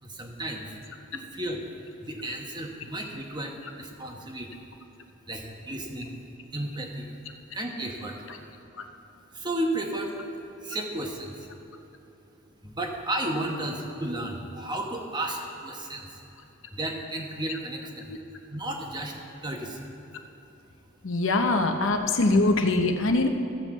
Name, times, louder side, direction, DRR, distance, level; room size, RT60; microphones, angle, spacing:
voice 1, 0.0-0.7 1.1-1.6 2.0-4.6 5.3-6.2 6.5-7.1 7.5-8.3 9.3-10.1 10.6-11.5 12.6-16.2 16.7-18.2 18.5-19.9, right 1 dB, 20° right, 2 dB, 1.1 m, -33 dB
voice 2, 21.0-23.3, left 2 dB, 70° left, 5 dB, 0.8 m, -23 dB
14.0 x 5.4 x 7.4 m, 2.9 s
head